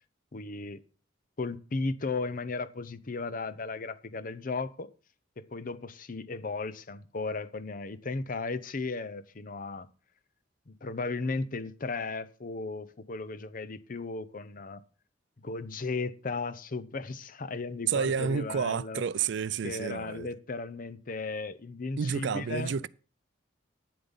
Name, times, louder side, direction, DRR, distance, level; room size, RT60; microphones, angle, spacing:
voice 1, 0.3-0.8 1.4-4.9 5.4-9.9 10.7-14.8 15.4-19.0 19.6-22.8, left 3 dB, 45° left, 0.7 m, -35 dB
voice 2, 17.9-20.3 22.0-22.9, right 6 dB, 65° right, 0.4 m, -30 dB
9.8 x 7.6 x 5.4 m
head